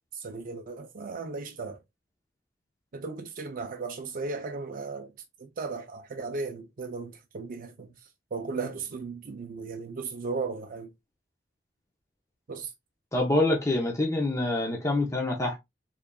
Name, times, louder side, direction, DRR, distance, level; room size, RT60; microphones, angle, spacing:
voice 1, 0.1-1.8 2.9-5.1 5.4-7.9 8.3-10.9 12.5-12.7, right 4 dB, 45° right, 0.5 m, -36 dB
voice 2, 13.1-15.6, left 2 dB, 15° left, 0.6 m, -26 dB
3.7 x 3.4 x 2.2 m
head